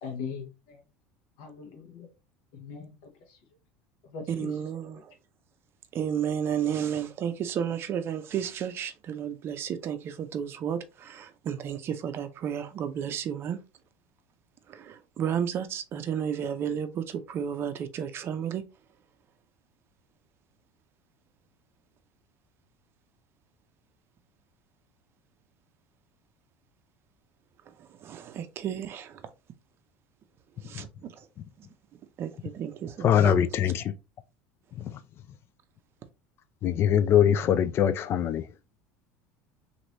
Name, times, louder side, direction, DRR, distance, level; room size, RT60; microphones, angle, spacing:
voice 1, 0.0-0.8 1.4-2.1 2.5-3.1 4.0-4.5, left 6 dB, 65° left, 0.9 m, -40 dB
voice 2, 4.3-5.0 5.9-13.6 14.7-18.6 28.0-29.1 30.6-31.1 32.2-33.4, right 8 dB, 45° right, 0.5 m, -32 dB
voice 3, 33.0-33.9 36.6-38.4, left 9 dB, 45° left, 0.4 m, -22 dB
3.0 x 2.6 x 2.9 m
hypercardioid pair, 80°, 6 cm